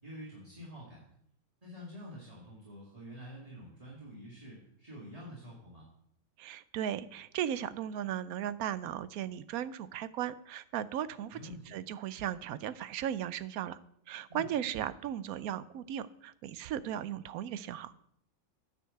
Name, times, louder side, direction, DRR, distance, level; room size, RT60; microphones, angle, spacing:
voice 1, 0.0-1.0 1.6-5.9 11.3-11.7 14.3-14.5, equal, 25° right, -6 dB, 2.5 m, -47 dB
voice 2, 6.4-13.8 14.1-17.9, right 10 dB, 85° right, 15 dB, 1.0 m, -36 dB
9.7 x 5.6 x 6.6 m, 0.72 s
omnidirectional pair, 1.5 m